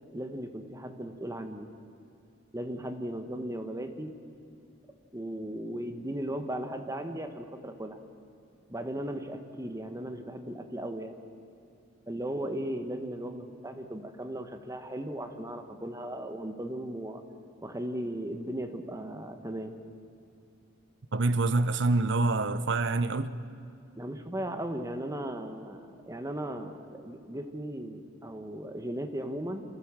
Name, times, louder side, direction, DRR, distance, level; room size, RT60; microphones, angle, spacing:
voice 1, 0.1-1.7 2.5-4.1 5.1-8.0 8.7-11.2 12.1-17.2 17.6-19.8 24.0-29.6, right 1 dB, 15° right, 1.3 m, -37 dB
voice 2, 21.1-23.4, right 3 dB, 65° right, 0.8 m, -26 dB
28.0 x 14.5 x 7.4 m
head